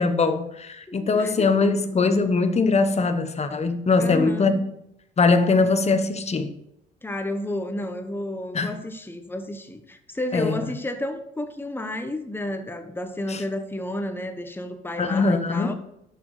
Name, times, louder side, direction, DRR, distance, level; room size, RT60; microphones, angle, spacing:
voice 1, 0.0-4.5 5.2-6.5 8.5-8.8 10.3-10.7 13.3-13.4 15.0-15.7, left 4 dB, 35° left, 1.1 m, -21 dB
voice 2, 0.9-1.5 4.0-4.6 5.6-5.7 7.0-15.7, left 1 dB, 10° left, 1.2 m, -31 dB
10.5 x 6.3 x 4.9 m
cardioid pair, 90°, 20 cm